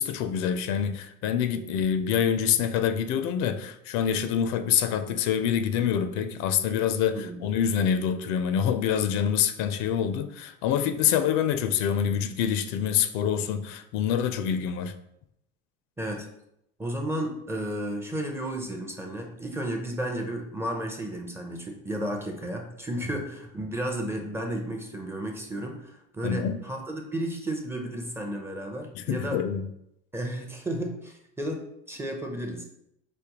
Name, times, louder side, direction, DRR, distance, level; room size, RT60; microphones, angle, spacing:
voice 1, 0.0-14.9 26.2-26.6 28.9-29.6, left 8 dB, 65° left, 0.4 m, -26 dB
voice 2, 16.8-29.4 30.1-32.6, right 1 dB, 10° right, 0.5 m, -33 dB
5.1 x 2.1 x 2.8 m
supercardioid pair, 110°, 30 cm